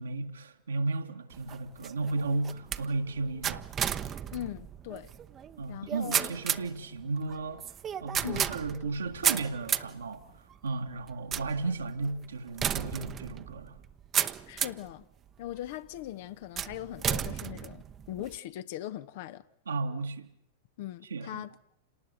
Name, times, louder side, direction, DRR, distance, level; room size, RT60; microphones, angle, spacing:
voice 1, 0.0-3.7 5.6-7.7 8.0-13.8 19.7-20.3 21.1-21.4, right 3 dB, 75° right, 1.9 m, -34 dB
sound 1, 1.3-14.9 15.5-15.9 16.6-18.4, right 9 dB, 25° right, 1.0 m, -34 dB
voice 2, 4.3-5.1 5.7-6.3 8.2-8.5 14.5-15.0 15.4-19.4 20.8-21.5, left 13 dB, 50° left, 1.0 m, -40 dB
28.5 x 19.0 x 8.0 m
figure-of-eight pair, 95°, 0 cm